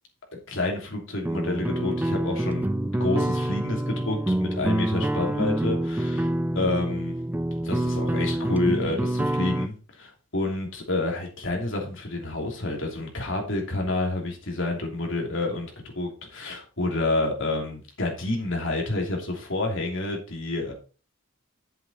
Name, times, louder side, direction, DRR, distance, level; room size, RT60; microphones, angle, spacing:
voice 1, 0.5-6.3 6.5-7.1 7.6-20.7, left 2 dB, 60° left, 1 dB, 2.9 m, -29 dB
Rock Anthem Intro - Guitar Only, 1.3-9.7, right 1 dB, 10° right, 0.3 m, -27 dB
8.4 x 7.6 x 4.2 m, 0.35 s
head